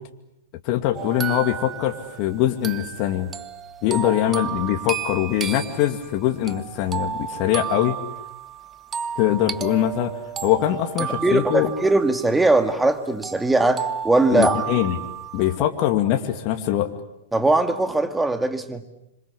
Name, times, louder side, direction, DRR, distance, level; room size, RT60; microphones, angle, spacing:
voice 1, 0.6-3.3 3.8-8.0 9.2-10.1 10.4-11.7 14.3-15.0 15.3-16.9, left 12 dB, 45° left, 5 dB, 2.4 m, -22 dB
sound 1, 0.9-12.9 13.2-15.6, right 8 dB, 25° right, 1.1 m, -33 dB
voice 2, 11.0-14.6 17.3-18.8, right 2 dB, 5° right, 9 dB, 2.2 m, -20 dB
26.5 x 26.5 x 8.3 m, 0.86 s
hypercardioid pair, 105°, 0 cm